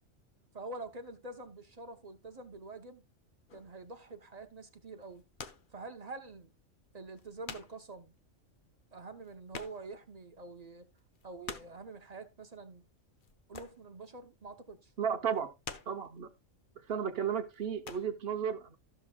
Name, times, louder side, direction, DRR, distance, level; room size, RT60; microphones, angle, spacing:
voice 1, 0.5-3.0 3.5-5.2 5.7-6.5 6.9-8.1 8.9-10.9 11.2-12.8 13.5-14.9, right 3 dB, 35° right, 0.8 m, -46 dB
sound 1, 3.5-3.8 4.9-5.8 6.1-6.2 6.8-6.9 7.1-7.9 8.2-8.3 8.5-8.6 8.9-10.1 10.5-10.6 11.0-11.9 13.2-14.0 14.3-14.6 15.2-16.2 16.8-17.1 17.4-18.1, left 5 dB, 45° left, 0.8 m, -47 dB
voice 2, 15.0-15.5 15.9-16.3 16.9-18.8, right 7 dB, 50° right, 1.1 m, -33 dB
15.0 x 6.1 x 2.3 m
omnidirectional pair, 1.4 m